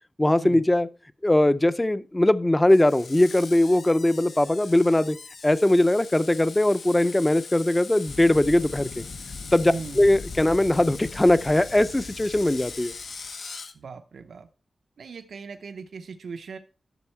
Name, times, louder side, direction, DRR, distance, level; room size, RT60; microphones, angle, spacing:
voice 1, 0.2-0.9 1.2-5.2 5.4-9.0 9.5-12.9, left 1 dB, 15° left, 0.5 m, -20 dB
Screech, 2.7-13.7, left 4 dB, 80° left, 1.1 m, -42 dB
sound 1, 8.1-13.3, left 4 dB, 65° left, 0.6 m, -42 dB
voice 2, 9.7-10.1 13.7-14.5 15.0-16.6, right 5 dB, 85° right, 0.7 m, -39 dB
12.0 x 7.1 x 4.4 m
wide cardioid pair, 130°, 0 cm